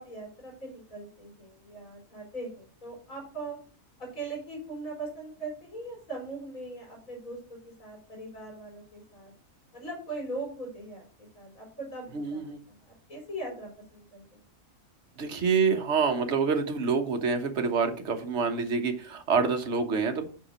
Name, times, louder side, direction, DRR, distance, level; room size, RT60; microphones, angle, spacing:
voice 1, 0.0-3.6 4.0-9.3 9.7-14.4, right 2 dB, 80° left, -1 dB, 4.3 m, -40 dB
voice 2, 12.1-12.6 15.2-20.3, right 5 dB, 60° right, 6 dB, 1.4 m, -27 dB
5.9 x 5.9 x 6.3 m, 0.41 s
omnidirectional pair, 1.4 m